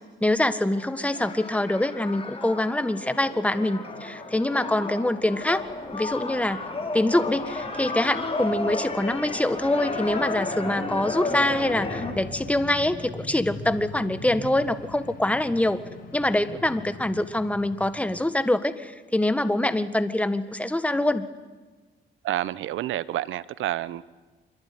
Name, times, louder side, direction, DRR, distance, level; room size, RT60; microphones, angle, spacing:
voice 1, 0.2-5.6 5.9-6.6 6.9-15.8 16.1-21.3, left 1 dB, 5° left, 12 dB, 1.7 m, -25 dB
sound 1, 0.7-12.1, left 3 dB, 30° left, 5.6 m, -33 dB
sound 2, 5.4-18.2, left 3 dB, 45° left, 8.0 m, -43 dB
voice 2, 22.2-24.0, right 13 dB, 80° right, 18 dB, 1.0 m, -29 dB
26.0 x 23.0 x 9.6 m, 1.3 s
cardioid pair, 90°, 20 cm